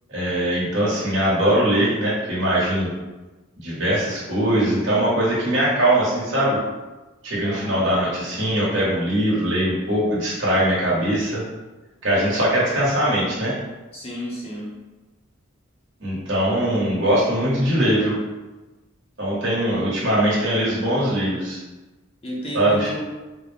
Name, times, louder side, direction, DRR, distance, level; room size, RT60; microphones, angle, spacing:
voice 1, 0.1-2.9 3.6-6.6 7.2-11.4 12.0-13.5 16.0-18.2 19.2-21.6 22.5-22.9, right 1 dB, 55° right, -6 dB, 1.2 m, -21 dB
voice 2, 7.4-7.9 13.9-14.7 22.2-23.0, equal, 25° left, -5 dB, 0.6 m, -32 dB
3.8 x 2.1 x 3.3 m, 1.1 s
head